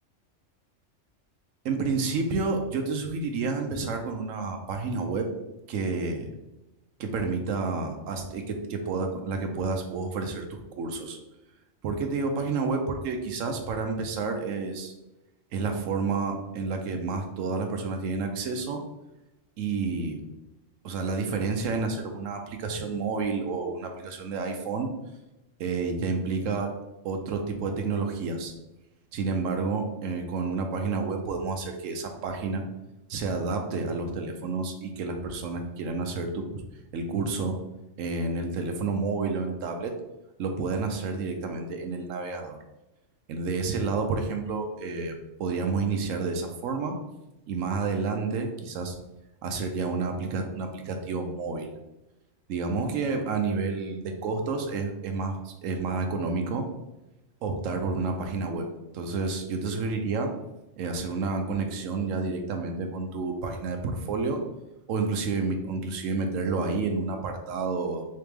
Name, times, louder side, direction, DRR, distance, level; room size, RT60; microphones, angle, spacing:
voice 1, 1.6-5.3 5.7-6.3 7.0-11.2 11.8-14.9 15.5-18.8 19.6-20.2 20.8-24.9 25.6-26.7 27.0-28.5 29.1-32.6 33.1-36.5 36.9-37.6 38.0-40.0 40.4-42.6 43.3-47.0 47.5-48.9 49.4-51.7 52.5-56.7 57.4-58.7 58.9-60.3 60.8-64.4 64.9-68.0, right 4 dB, 90° right, 4 dB, 1.0 m, -30 dB
3.7 x 3.2 x 3.4 m, 0.95 s
omnidirectional pair, 1.3 m